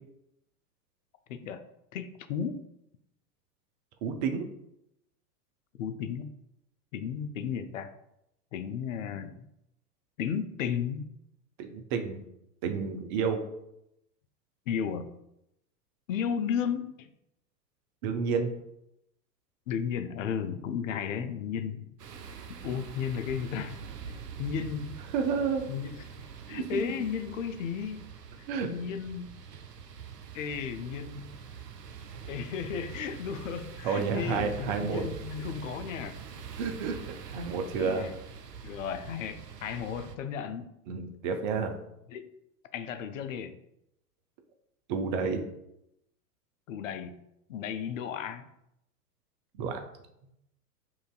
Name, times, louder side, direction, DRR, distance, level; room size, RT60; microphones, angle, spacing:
voice 1, 1.3-1.6 1.9-2.6 5.8-6.4 6.9-7.9 8.5-9.4 10.2-11.1 14.7-15.1 16.1-17.1 19.7-22.0 22.6-23.8 24.4-24.9 25.7-26.1 26.5-28.1 28.7-29.3 30.3-31.4 32.3-36.2 37.5-38.1 38.6-40.7 42.1-42.3 42.7-43.6 46.7-47.1 47.5-48.4, left 7 dB, 55° left, 9 dB, 0.5 m, -34 dB
voice 2, 4.0-4.5 11.6-12.2 12.6-13.4 18.0-18.5 25.1-25.6 26.5-26.8 28.5-28.7 33.8-35.0 36.6-38.1 40.9-41.7 44.9-45.4 49.6-49.8, right 5 dB, 30° right, 5 dB, 0.4 m, -30 dB
sound 1, 22.0-40.2, right 6 dB, 80° right, 0.6 m, -44 dB
5.6 x 2.6 x 2.3 m, 0.81 s
figure-of-eight pair, 100°, 48 cm